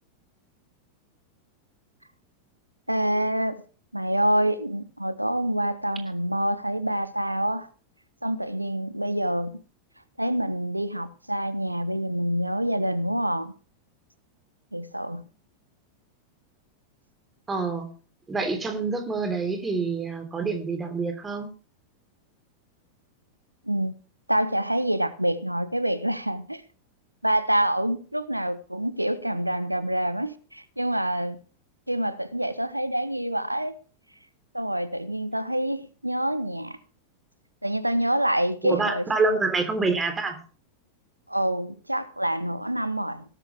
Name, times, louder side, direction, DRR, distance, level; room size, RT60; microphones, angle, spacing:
voice 1, 2.9-3.6 3.9-7.7 8.2-9.6 10.2-13.5 14.7-15.2 23.6-23.9 24.3-26.6 27.2-31.4 31.9-33.7 34.5-36.8 37.6-39.4 41.3-43.2, right 1 dB, 85° right, 1.3 m, -26 dB
voice 2, 17.5-17.9 18.3-21.5 38.6-40.4, right 3 dB, 15° right, 3.5 m, -27 dB
17.5 x 13.5 x 3.5 m
figure-of-eight pair, 90°, 0 cm